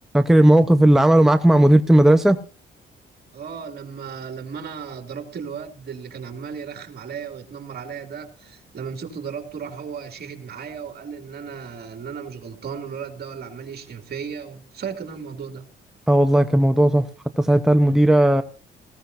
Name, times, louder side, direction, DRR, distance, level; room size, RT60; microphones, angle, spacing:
voice 1, 0.1-2.4 16.1-17.1 17.4-18.4, right 1 dB, ahead, 0.9 m, -15 dB
voice 2, 3.3-15.7, right 6 dB, 55° right, 2.9 m, -35 dB
20.0 x 16.0 x 2.7 m
cardioid pair, 90°, 20 cm